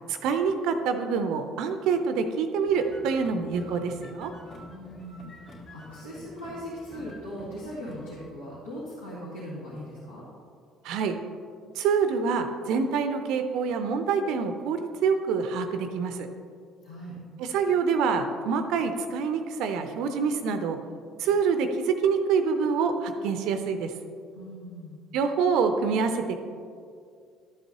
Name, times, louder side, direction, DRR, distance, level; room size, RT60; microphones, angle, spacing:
voice 1, 0.1-4.3 10.8-11.2 11.8-16.3 17.4-20.8 21.2-23.9 25.1-26.4, right 5 dB, 60° right, 8 dB, 0.5 m, -26 dB
sound 1, 2.6-8.3, left 1 dB, 45° left, 2.3 m, -47 dB
voice 2, 4.7-10.2 16.8-17.2 24.3-25.0, equal, 80° left, -9 dB, 1.7 m, -39 dB
12.5 x 8.0 x 2.9 m, 2.3 s
figure-of-eight pair, 50°, 0 cm